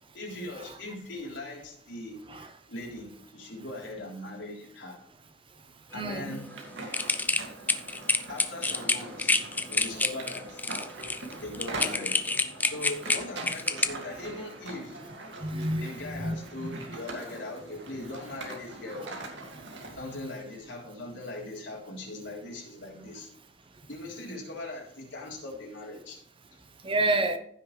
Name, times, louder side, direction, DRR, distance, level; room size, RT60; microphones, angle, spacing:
voice 1, 0.1-5.0 5.9-6.5 8.3-9.4 9.7-10.6 11.3-12.2 12.6-15.0 15.8-19.2 19.9-23.3 23.9-26.2 26.5-26.6, left 2 dB, 75° left, 3.5 m, -40 dB
voice 2, 5.9-6.4 15.4-17.0 26.8-27.4, right 2 dB, 30° right, 0.9 m, -30 dB
sound 1, 6.4-20.0, right 2 dB, 75° right, 2.3 m, -42 dB
sound 2, 6.9-13.9, left 3 dB, 10° left, 0.5 m, -27 dB
15.0 x 6.3 x 3.3 m
head